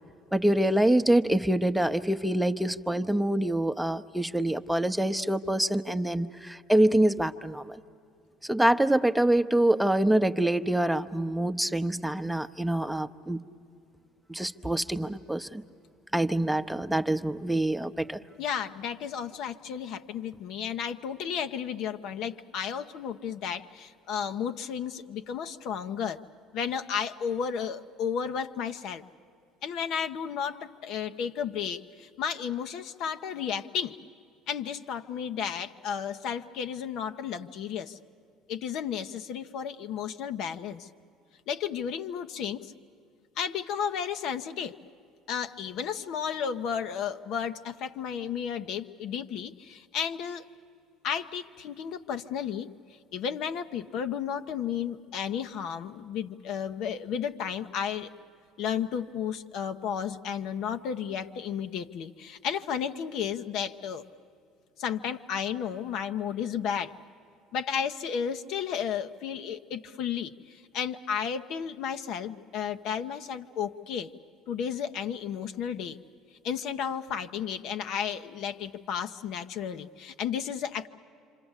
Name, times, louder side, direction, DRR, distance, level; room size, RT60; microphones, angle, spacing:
voice 1, 0.3-7.8 8.4-13.4 14.3-15.6 16.1-18.2, right 1 dB, 5° right, 9 dB, 0.8 m, -25 dB
voice 2, 18.4-26.2 26.5-29.0 29.6-34.0 34.5-38.0 38.5-40.9 41.5-42.7 43.4-44.8 45.3-50.4 51.0-52.7 53.1-58.1 58.6-64.0 64.8-66.9 67.5-74.1 74.5-76.0 76.4-80.9, left 7 dB, 65° left, 8 dB, 0.9 m, -33 dB
27.0 x 26.0 x 8.2 m, 2.4 s
hypercardioid pair, 75°, 0 cm